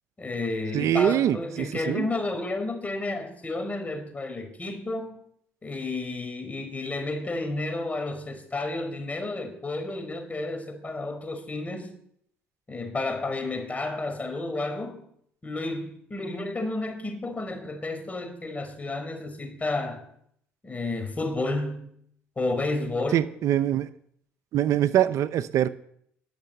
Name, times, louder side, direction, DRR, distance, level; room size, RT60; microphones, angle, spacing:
voice 1, 0.2-5.2 5.6-11.9 12.7-15.0 15.4-20.0 20.6-21.9 22.4-23.3, left 2 dB, 25° left, 4.5 m, -31 dB
voice 2, 0.7-2.1 23.1-23.9 24.5-25.7, right 11 dB, 65° right, 0.6 m, -23 dB
20.0 x 6.7 x 8.0 m
supercardioid pair, 70°, 6 cm